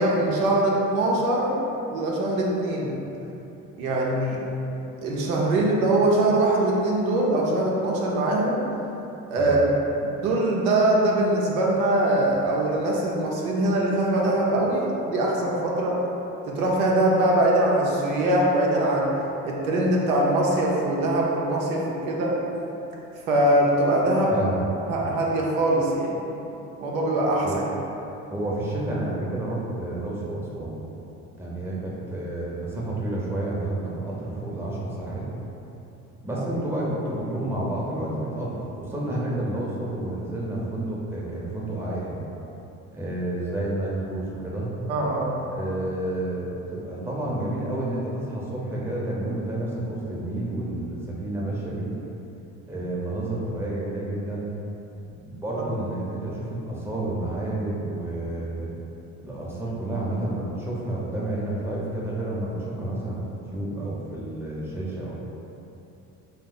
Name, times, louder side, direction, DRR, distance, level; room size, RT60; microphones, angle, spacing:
voice 1, 0.0-1.6 1.9-2.9 3.8-4.4 5.0-8.6 9.3-9.6 10.2-16.0 16.5-19.1 19.4-22.3 23.3-24.3 24.9-26.2 26.8-27.6 36.3-36.4 44.9-45.4 55.6-55.7, right 1 dB, 90° right, -3 dB, 0.6 m, -22 dB
voice 2, 24.3-25.0 27.4-27.6 28.3-30.8 31.4-35.3 36.2-42.2 42.9-44.7 45.5-51.9 52.7-54.5 55.4-58.7 59.2-65.2, right 1 dB, 5° right, -6 dB, 0.7 m, -30 dB
2.6 x 2.1 x 3.9 m, 2.9 s
hypercardioid pair, 65°, 41 cm